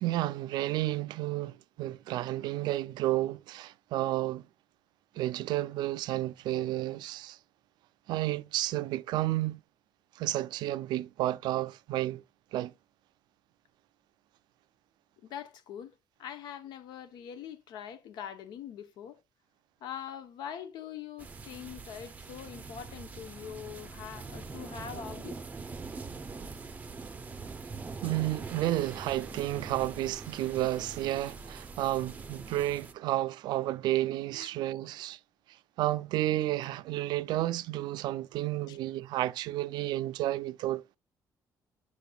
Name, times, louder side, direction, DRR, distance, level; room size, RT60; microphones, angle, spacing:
voice 1, 0.0-4.4 5.2-7.4 8.1-9.6 10.2-12.2 12.5-12.7 28.0-35.2 35.8-41.0, right 15 dB, 85° right, 0.4 m, -31 dB
voice 2, 15.2-15.9 16.2-19.2 19.8-25.4 31.1-31.2 34.4-34.5 38.7-38.8, left 9 dB, 80° left, 0.8 m, -43 dB
sound 1, 21.2-32.9, right 4 dB, 20° right, 0.5 m, -43 dB
7.0 x 6.6 x 2.3 m
cardioid pair, 145°, 7 cm